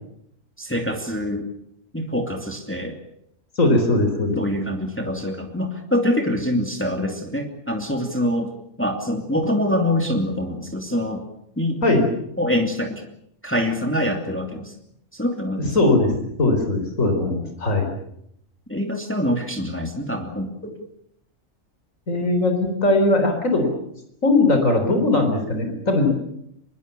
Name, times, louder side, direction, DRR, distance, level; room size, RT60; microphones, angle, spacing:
voice 1, 0.6-1.5 1.9-3.0 4.4-8.5 8.8-11.2 11.6-11.8 12.4-13.0 13.4-14.7 15.1-15.7 18.7-20.7, left 1 dB, 10° left, 3 dB, 2.7 m, -25 dB
voice 2, 3.6-4.4 11.8-12.0 15.7-17.9 22.1-23.7 24.2-26.1, left 2 dB, 80° left, 5 dB, 4.4 m, -19 dB
24.0 x 22.5 x 6.9 m, 0.74 s
omnidirectional pair, 1.3 m